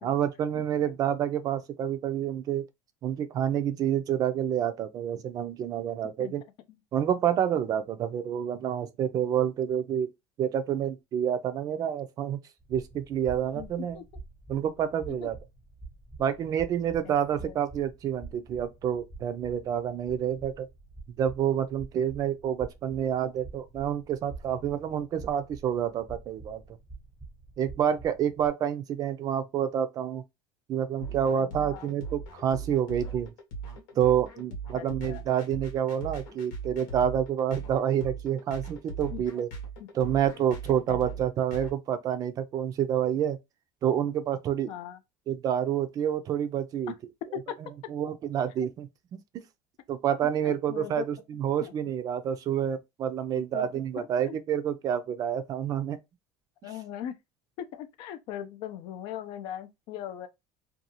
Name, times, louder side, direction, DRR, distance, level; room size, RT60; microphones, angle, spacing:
voice 1, 0.0-2.6 3.0-6.4 6.9-10.1 10.4-12.4 12.7-14.0 14.5-15.4 16.2-20.7 21.2-26.6 27.6-30.2 30.7-33.3 34.0-39.5 39.9-43.4 43.8-44.7 45.3-46.9 47.9-49.2 49.9-56.0, right 9 dB, 40° right, 0.4 m, -28 dB
sound 1, 12.6-28.5, right 3 dB, 5° left, 0.8 m, -47 dB
voice 2, 17.0-17.5 31.4-31.9 34.7-35.3 39.1-39.2 40.9-41.0 44.7-45.0 46.9-47.0 47.3-47.6 48.6-48.7 50.4-51.0 51.6-51.7 53.3-53.7 54.0-54.4 56.6-57.2 57.6-60.3, left 10 dB, 60° left, 0.4 m, -39 dB
sound 2, 31.0-41.7, right 4 dB, 85° left, 1.0 m, -39 dB
2.6 x 2.3 x 2.8 m
cardioid pair, 135°, 10 cm